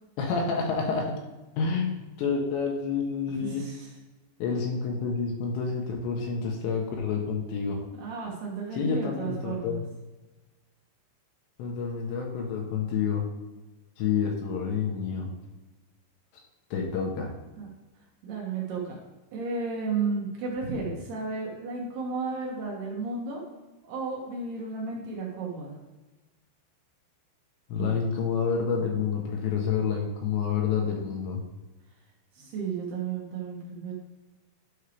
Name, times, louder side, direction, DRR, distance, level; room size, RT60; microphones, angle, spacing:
voice 1, 0.2-1.2 1.6-1.9 2.2-3.6 4.4-7.8 8.7-9.8 11.6-13.2 14.0-15.3 16.7-17.3 20.8-20.9 27.7-31.4, left 5 dB, 75° left, 0 dB, 3.0 m, -28 dB
voice 2, 3.4-3.9 8.0-9.8 17.6-17.7 18.2-19.0 19.3-23.4 23.9-25.8 27.7-28.0 32.4-33.9, right 4 dB, 70° right, -2 dB, 2.8 m, -33 dB
11.5 x 5.5 x 3.4 m, 1.1 s
omnidirectional pair, 5.6 m